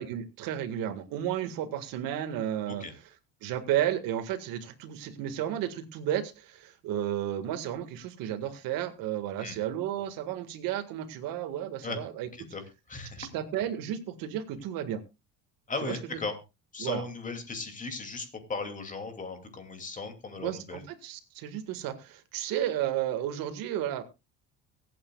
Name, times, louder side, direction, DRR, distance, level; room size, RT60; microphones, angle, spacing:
voice 1, 0.0-2.9 3.4-12.3 13.2-15.0 15.8-16.2 16.8-17.0 20.4-24.0, right 11 dB, 70° right, 10 dB, 1.8 m, -33 dB
voice 2, 12.9-13.3 15.7-16.4 16.7-20.8, left 3 dB, 20° left, 6 dB, 2.6 m, -37 dB
24.0 x 8.7 x 2.4 m, 0.26 s
cardioid pair, 150°, 36 cm